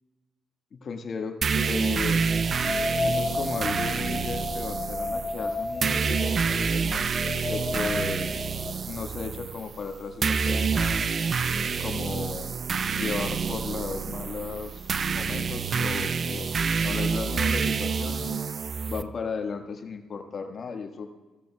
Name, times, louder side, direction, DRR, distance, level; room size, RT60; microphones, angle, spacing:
voice 1, 0.7-2.2 3.0-7.0 7.5-8.3 8.9-11.1 11.8-12.6 12.9-16.5 16.8-18.4 18.9-21.1, left 5 dB, 55° left, 4 dB, 1.5 m, -35 dB
sound 1, 1.4-19.0, right 5 dB, 50° right, 0.5 m, -28 dB
sound 2, 2.2-8.7, left 3 dB, 30° left, 3.8 m, -32 dB
16.0 x 13.5 x 2.3 m, 1.2 s
supercardioid pair, 55°, 0 cm